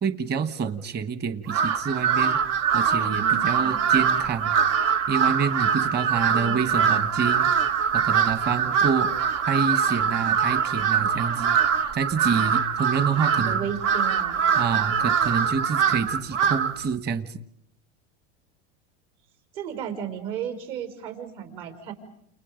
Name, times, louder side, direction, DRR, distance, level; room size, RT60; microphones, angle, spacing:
voice 1, 0.0-2.4 2.7-4.6 5.1-7.5 7.9-9.2 9.5-11.6 11.9-13.7 14.6-17.4, right 6 dB, 30° right, 10 dB, 1.4 m, -27 dB
Crow, 1.5-16.8, right 7 dB, 85° right, 1.9 m, -23 dB
voice 2, 3.0-3.8 6.3-6.9 13.3-14.4 19.5-21.9, right 8 dB, 60° right, 5 dB, 5.6 m, -34 dB
30.0 x 30.0 x 5.2 m, 0.72 s
supercardioid pair, 140°, 35 cm